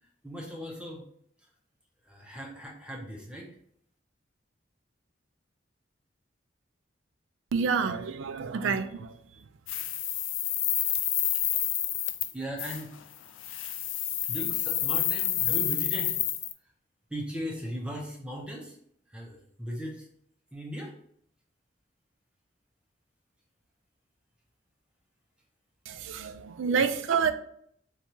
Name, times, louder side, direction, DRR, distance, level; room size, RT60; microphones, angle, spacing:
voice 1, 0.2-1.1 2.0-3.5 12.3-13.0 14.3-16.2 17.1-18.8 19.1-20.1 20.5-20.9, equal, 5° right, 0.5 m, -38 dB
voice 2, 7.5-9.2 25.9-27.3, right 6 dB, 90° right, 0.3 m, -28 dB
sound 1, 9.7-12.3 12.6-12.8 13.4-16.5, left 12 dB, 90° left, 0.3 m, -29 dB
4.2 x 2.3 x 2.7 m
head